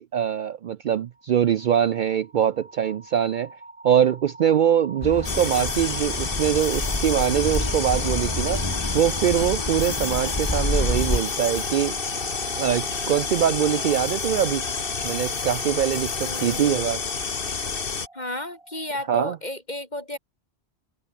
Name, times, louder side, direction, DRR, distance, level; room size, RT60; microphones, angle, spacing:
voice 1, 0.0-3.5 3.8-8.6 8.9-12.0 12.6-14.6 15.0-17.0 19.1-19.4, right 9 dB, 60° right, 0.6 m, -23 dB
sound 1, 1.2-19.1, right 2 dB, 30° right, 1.9 m, -41 dB
Car passing by / Accelerating revving vroom, 5.0-11.2, left 1 dB, 20° left, 3.1 m, -29 dB
sound 2, 5.2-18.1, left 5 dB, 60° left, 1.6 m, -29 dB
voice 2, 16.2-16.9 18.1-20.2, left 1 dB, 40° left, 5.0 m, -33 dB
omnidirectional pair, 1.1 m